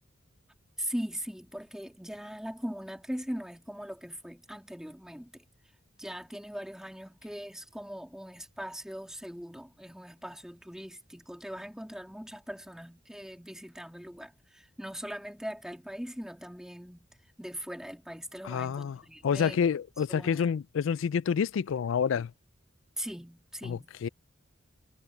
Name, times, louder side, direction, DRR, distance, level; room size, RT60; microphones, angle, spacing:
voice 1, 0.8-5.4 6.0-17.1 17.4-19.6 20.1-20.5 23.0-23.9, equal, 5° right, 2.3 m, -40 dB
voice 2, 18.4-19.0 19.2-22.3 23.6-24.1, left 7 dB, 85° left, 0.4 m, -28 dB
head